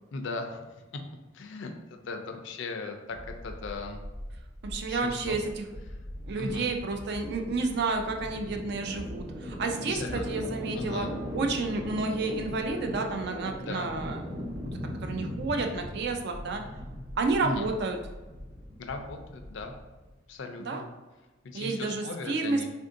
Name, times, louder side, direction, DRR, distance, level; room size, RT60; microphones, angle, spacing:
voice 1, 0.1-0.8 1.3-4.0 4.9-5.4 5.9-6.0 6.4-6.7 9.9-10.5 10.7-11.1 13.6-13.9 17.4-17.7 18.8-19.7 20.3-20.9 21.4-22.7, left 3 dB, 70° left, 5 dB, 0.4 m, -38 dB
Watery Grainy, 3.1-20.1, equal, 20° right, 0.8 m, -39 dB
voice 2, 4.6-5.6 6.3-11.1 11.3-14.5 15.0-16.6 17.2-18.0 20.7-20.8 21.5-22.6, right 3 dB, 60° right, 4 dB, 0.4 m, -30 dB
3.5 x 2.5 x 2.5 m, 1.1 s
head